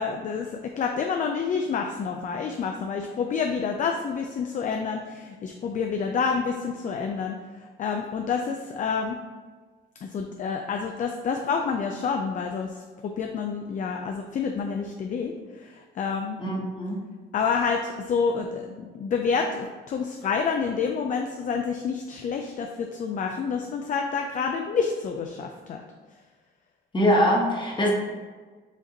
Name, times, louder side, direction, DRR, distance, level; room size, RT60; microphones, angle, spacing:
voice 1, 0.0-9.2 10.0-16.4 17.3-25.8, left 5 dB, 40° left, 3 dB, 0.4 m, -28 dB
voice 2, 16.4-17.0 26.9-27.9, equal, 25° left, -2 dB, 1.2 m, -23 dB
5.1 x 2.6 x 3.9 m, 1.4 s
cardioid pair, 90°, 20 cm